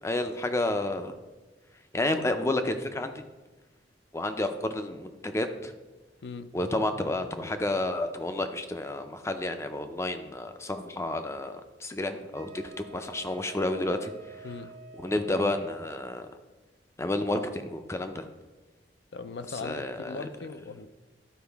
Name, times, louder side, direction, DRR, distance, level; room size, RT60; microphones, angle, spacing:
voice 1, 0.0-1.1 1.9-3.2 4.1-5.7 6.5-14.5 15.0-16.3 17.0-18.3 19.5-20.3, left 2 dB, 15° left, 8 dB, 0.5 m, -30 dB
Wind instrument woodwind instrument, 12.3-16.2, right 4 dB, 65° right, 0.8 m, -49 dB
voice 2, 19.1-20.9, left 4 dB, 70° left, 12 dB, 0.4 m, -39 dB
11.5 x 4.6 x 3.5 m, 1.2 s
head